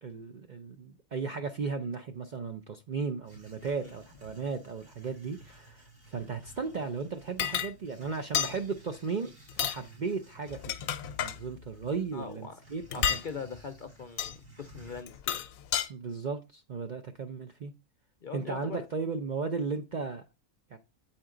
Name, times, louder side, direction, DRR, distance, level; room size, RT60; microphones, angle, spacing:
voice 1, 0.0-9.3 9.6-10.7 11.2-13.1 15.9-17.7 18.3-20.2 20.7-20.8, right 4 dB, 50° right, 0.6 m, -35 dB
sound 1, 3.2-15.0, right 2 dB, 75° right, 3.8 m, -54 dB
sound 2, 7.4-7.7 8.3-8.6 9.5-9.8 10.5-11.4 12.9-13.3 14.2-14.3 15.1-15.9, left 9 dB, 90° left, 1.0 m, -30 dB
voice 2, 12.1-12.6 12.9-15.4 18.2-18.8, left 5 dB, 50° left, 0.6 m, -41 dB
8.0 x 4.4 x 3.7 m
omnidirectional pair, 1.4 m